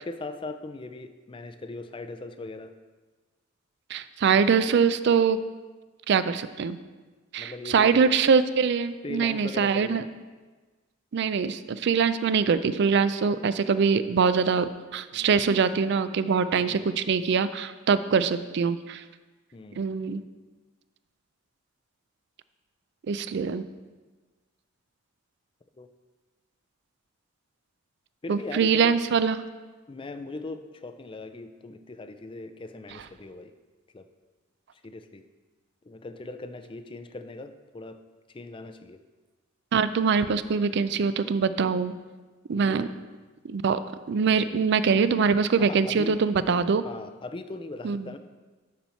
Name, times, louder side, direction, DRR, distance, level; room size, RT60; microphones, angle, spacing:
voice 1, 0.0-2.7 7.4-8.1 9.0-10.0 15.1-15.4 16.6-16.9 19.5-20.0 25.8-25.9 28.2-29.0 29.9-33.5 33.9-34.1 34.8-35.2 35.8-38.0 38.3-39.0 42.5-42.8 45.6-46.2 46.8-48.2, left 2 dB, 25° left, 8 dB, 0.4 m, -39 dB
voice 2, 3.9-5.4 6.1-6.8 7.3-10.0 11.1-19.0 19.8-20.2 23.1-23.6 28.3-29.4 39.7-41.9 42.5-42.9 43.4-43.8 44.1-46.8 47.8-48.1, right 5 dB, 55° right, 13 dB, 0.4 m, -23 dB
12.5 x 4.4 x 4.4 m, 1.3 s
head